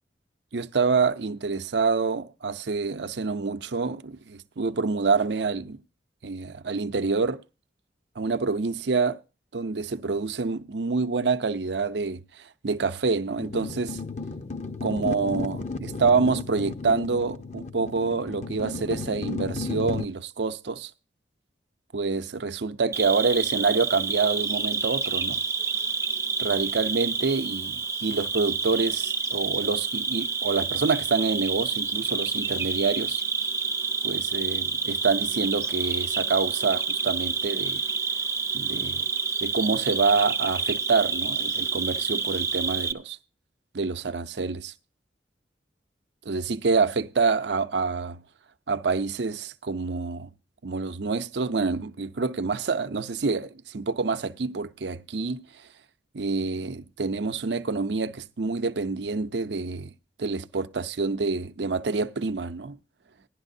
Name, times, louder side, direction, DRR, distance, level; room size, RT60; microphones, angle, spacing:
voice 1, 0.5-5.8 6.2-7.4 8.2-9.2 9.5-14.0 14.8-20.9 21.9-25.4 26.4-33.2 34.0-37.8 38.5-39.1 39.4-43.2 43.7-44.7 46.3-48.2 48.7-50.3 50.6-55.5 56.1-59.9 60.2-62.8, right 4 dB, 75° right, 0.6 m, -27 dB
sound 1, 13.4-20.0, left 3 dB, 40° left, 0.7 m, -34 dB
Cricket, 22.9-42.9, right 5 dB, 15° right, 0.6 m, -28 dB
16.0 x 11.5 x 2.6 m
head